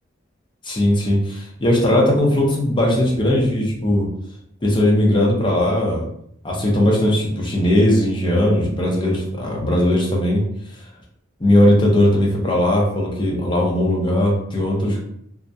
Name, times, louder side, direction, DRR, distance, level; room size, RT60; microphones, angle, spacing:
voice 1, 0.6-4.1 4.6-6.1 6.4-10.4 11.4-15.0, left 1 dB, 25° left, -2 dB, 0.5 m, -18 dB
2.3 x 2.1 x 2.6 m, 0.73 s
head